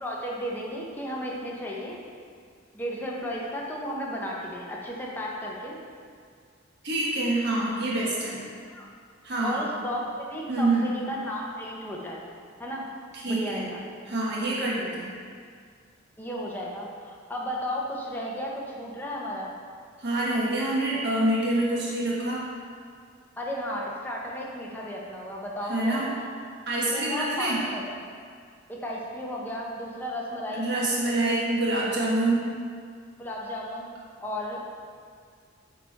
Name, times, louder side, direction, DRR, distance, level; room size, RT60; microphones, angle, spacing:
voice 1, 0.0-2.0 2.7-5.8 8.7-8.9 9.4-12.2 12.6-12.9 13.3-13.8 16.2-19.5 23.4-26.3 26.9-27.9 28.7-30.7 33.2-34.6, equal, 10° left, -3 dB, 0.9 m, -34 dB
voice 2, 6.8-8.4 9.2-9.6 10.5-10.9 13.1-13.7 14.1-15.1 20.0-22.4 25.6-26.1 26.7-27.6 30.5-32.5, right 2 dB, 55° right, -6 dB, 1.4 m, -26 dB
9.2 x 3.7 x 4.1 m, 2.1 s
head